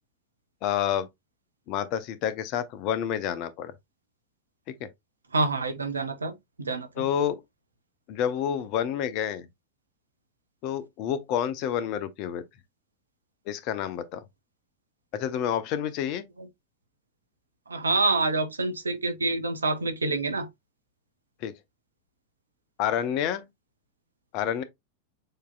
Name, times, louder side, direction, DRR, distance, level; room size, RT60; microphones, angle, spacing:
voice 1, 0.6-1.1 1.7-3.7 4.8-4.9 7.0-7.4 8.1-9.5 10.6-12.4 13.5-14.2 15.1-16.2 21.4-21.5 22.8-23.4 24.3-24.6, left 9 dB, 40° left, 0.6 m, -29 dB
voice 2, 5.3-6.3 6.6-6.9 17.7-20.5, right 3 dB, 75° right, 0.8 m, -26 dB
6.5 x 2.8 x 2.3 m
figure-of-eight pair, 90°, 0 cm